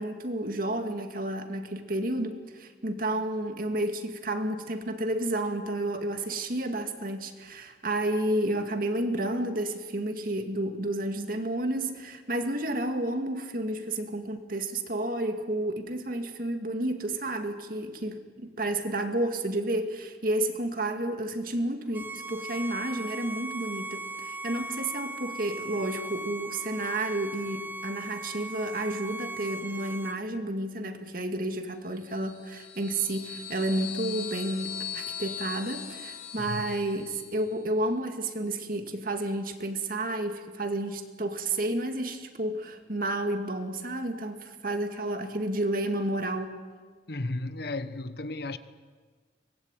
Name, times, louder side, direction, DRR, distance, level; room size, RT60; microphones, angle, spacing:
voice 1, 0.0-46.6, right 1 dB, 50° right, 2.2 m, -31 dB
Bowed string instrument, 21.9-30.2, right 2 dB, 10° right, 0.8 m, -38 dB
sound 1, 32.0-37.5, left 8 dB, 40° left, 4.8 m, -40 dB
voice 2, 47.1-48.6, left 2 dB, 60° left, 1.1 m, -34 dB
23.5 x 20.0 x 9.2 m
head